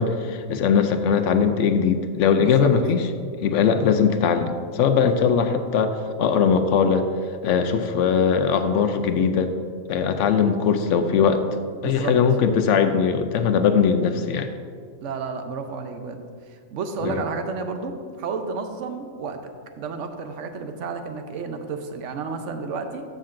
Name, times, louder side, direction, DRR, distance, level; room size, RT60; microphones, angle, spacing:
voice 1, 0.0-3.0 3.4-7.0 7.4-9.5 9.9-11.4 11.8-14.5 17.0-17.2, left 6 dB, 70° left, 8 dB, 0.9 m, -20 dB
voice 2, 2.3-2.7 11.8-12.2 15.0-16.2 16.5-19.4 19.8-23.0, right 4 dB, 65° right, 6 dB, 1.0 m, -31 dB
13.0 x 6.5 x 2.5 m, 2.1 s
omnidirectional pair, 1.4 m